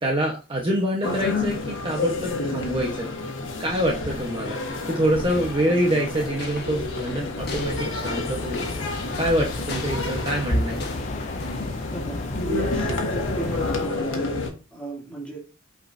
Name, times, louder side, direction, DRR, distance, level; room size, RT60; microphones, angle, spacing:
voice 1, 0.0-3.1 3.6-4.6 4.8-8.6 9.1-10.9, equal, 25° right, 0 dB, 1.1 m, -25 dB
sound 1, 1.0-14.5, left 2 dB, 70° left, 1.5 m, -29 dB
sound 2, 4.1-11.7, left 3 dB, 50° left, 1.6 m, -39 dB
sound 3, 7.4-13.9, left 3 dB, 35° left, 0.5 m, -34 dB
voice 2, 11.9-14.4 14.7-15.4, right 2 dB, 5° left, -4 dB, 2.7 m, -35 dB
8.3 x 5.1 x 2.7 m, 0.31 s
head